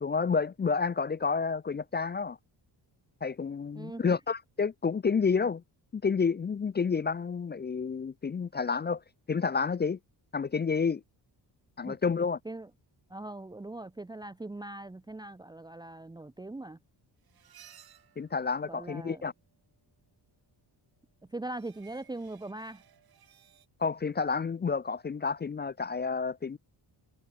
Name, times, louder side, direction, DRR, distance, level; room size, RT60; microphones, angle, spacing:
voice 1, 0.0-2.4 3.2-5.6 5.9-9.0 9.3-10.0 10.3-11.0 11.8-12.4 18.2-19.3 23.8-26.6, left 5 dB, 25° left, 0.4 m, -29 dB
voice 2, 3.7-4.1 11.8-12.0 12.4-12.7 13.1-16.8 18.7-19.3 21.3-22.8, right 2 dB, 10° right, 0.8 m, -41 dB
sound 1, 17.2-19.3 21.4-23.7, right 9 dB, 55° right, 2.3 m, -59 dB
wide cardioid pair, 150°, 43 cm